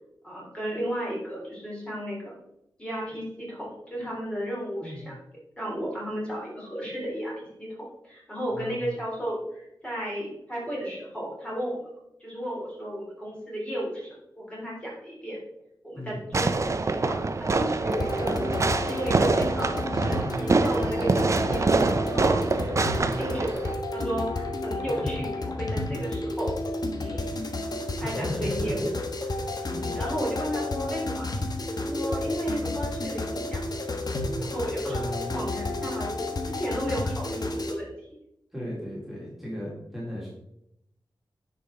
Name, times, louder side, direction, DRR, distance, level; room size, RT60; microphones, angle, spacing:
voice 1, 0.2-2.4 2.8-5.2 5.6-11.9 12.2-15.4 15.8-18.4 18.8-26.6 27.0-27.6 27.9-29.0 29.8-31.3 31.8-33.6 34.4-35.0 35.3-37.9, equal, 15° left, -5 dB, 3.4 m, -34 dB
voice 2, 8.5-8.9 15.9-16.2 24.9-25.1 28.0-28.7 29.7-29.9 34.9-35.4 38.5-40.3, left 1 dB, 5° right, -7 dB, 3.1 m, -35 dB
Fireworks, 16.3-23.7, right 3 dB, 40° right, 0.5 m, -25 dB
sound 1, 17.9-37.7, left 2 dB, 55° left, 1.2 m, -31 dB
9.8 x 5.7 x 3.8 m, 0.80 s
wide cardioid pair, 105°, 8 cm